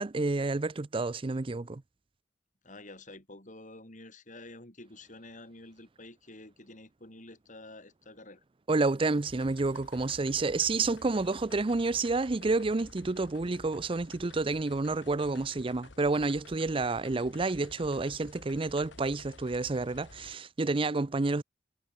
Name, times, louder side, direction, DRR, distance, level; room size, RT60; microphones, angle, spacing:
voice 1, 0.0-1.8 8.7-21.4, right 3 dB, 30° right, 0.5 m, -29 dB
voice 2, 2.6-8.4, left 2 dB, 45° left, 7.5 m, -49 dB
sound 1, 9.3-20.4, left 2 dB, 85° left, 1.8 m, -52 dB
head